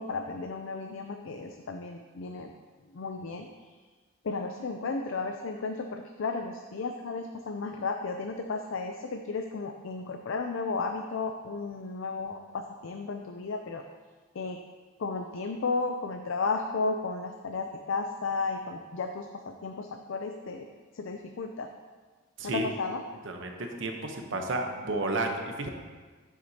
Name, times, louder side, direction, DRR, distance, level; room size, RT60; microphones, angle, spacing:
voice 1, 0.0-2.5 2.9-3.5 4.2-13.8 14.3-14.6 15.0-20.7 20.9-21.7 22.4-23.0, left 4 dB, 65° left, 5 dB, 0.4 m, -34 dB
voice 2, 23.2-25.7, right 2 dB, 60° right, 3 dB, 0.9 m, -32 dB
9.5 x 7.5 x 2.8 m, 1.4 s
head